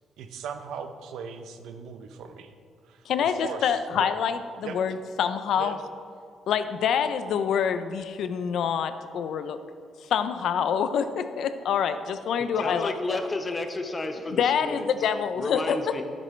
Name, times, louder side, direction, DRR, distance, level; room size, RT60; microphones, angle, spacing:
voice 1, 0.2-2.5 2.8-4.1 4.6-4.8 5.6-5.8, right 6 dB, 85° right, 8 dB, 0.6 m, -39 dB
voice 2, 3.1-5.8 6.5-9.6 10.1-13.2 14.4-15.8, left 7 dB, 70° left, 11 dB, 0.5 m, -26 dB
voice 3, 12.6-14.9 15.3-16.0, left 2 dB, 25° left, 6 dB, 0.9 m, -31 dB
9.9 x 8.5 x 3.2 m, 2.3 s
cardioid pair, 90°, 0 cm